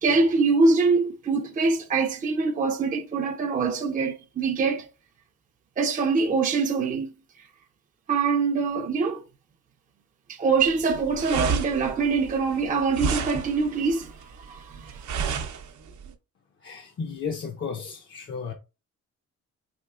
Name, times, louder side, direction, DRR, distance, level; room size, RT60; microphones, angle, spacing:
voice 1, 0.0-4.9 5.8-7.1 8.1-9.2 10.3-15.0, right 4 dB, 25° right, 0.5 m, -24 dB
sound 1, 10.6-16.1, right 5 dB, 70° right, 0.7 m, -31 dB
voice 2, 16.6-18.5, left 5 dB, 40° left, 0.6 m, -34 dB
4.4 x 2.9 x 2.4 m
cardioid pair, 90°, 30 cm